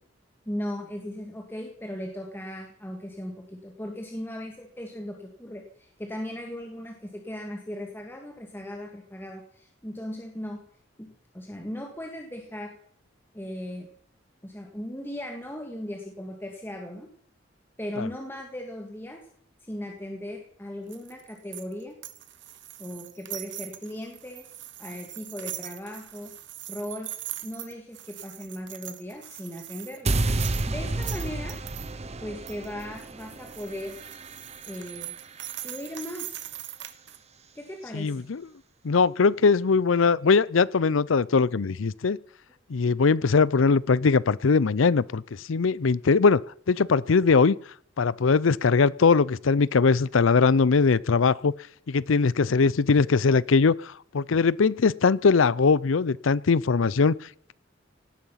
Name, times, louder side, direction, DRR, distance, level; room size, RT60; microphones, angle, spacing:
voice 1, 0.5-10.6 11.0-12.8 13.3-13.9 14.4-17.1 17.8-19.3 19.7-22.0 22.8-24.5 24.8-26.3 26.7-27.1 27.4-30.1 30.7-31.6 32.2-34.0 34.7-35.1 35.6-36.4 37.5-38.2, left 1 dB, 10° left, 1 dB, 1.9 m, -37 dB
sound 1, 20.9-31.9 32.5-37.2, right 13 dB, 65° right, 1.2 m, -41 dB
sound 2, 30.1-36.2, right 2 dB, 35° right, 0.9 m, -31 dB
voice 2, 37.9-38.4 38.8-42.2 42.7-45.2 45.5-47.6 48.0-51.5 51.9-57.1, left 4 dB, 85° left, 22 dB, 0.6 m, -21 dB
18.0 x 13.0 x 5.7 m, 0.63 s
head